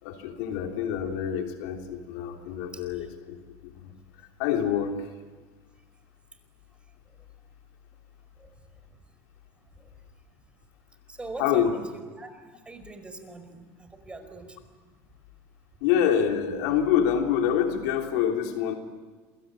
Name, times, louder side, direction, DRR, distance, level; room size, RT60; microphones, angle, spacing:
voice 1, 0.0-3.9 4.4-5.0 11.4-11.7 15.8-18.8, left 9 dB, 80° left, 3 dB, 3.3 m, -26 dB
voice 2, 11.1-12.3 12.6-14.5, right 3 dB, 10° right, 7 dB, 4.9 m, -41 dB
28.0 x 22.5 x 9.0 m, 1.4 s
supercardioid pair, 110°, 8 cm